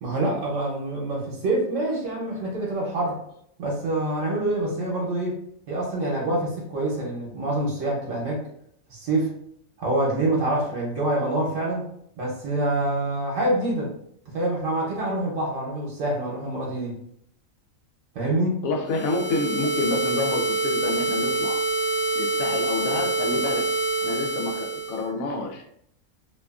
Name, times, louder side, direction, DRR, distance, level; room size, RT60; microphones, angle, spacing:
voice 1, 0.0-3.2 3.6-5.4 5.7-8.5 8.9-9.3 9.8-11.9 12.2-13.9 14.3-16.9 18.1-18.6, right 1 dB, 70° right, -3 dB, 1.0 m, -26 dB
voice 2, 18.6-21.6 22.1-23.7 24.0-25.6, left 2 dB, 90° left, 2 dB, 1.0 m, -28 dB
sound 1, 18.9-25.1, right 3 dB, 45° left, 0.5 m, -26 dB
2.8 x 2.3 x 2.3 m, 0.70 s
omnidirectional pair, 1.4 m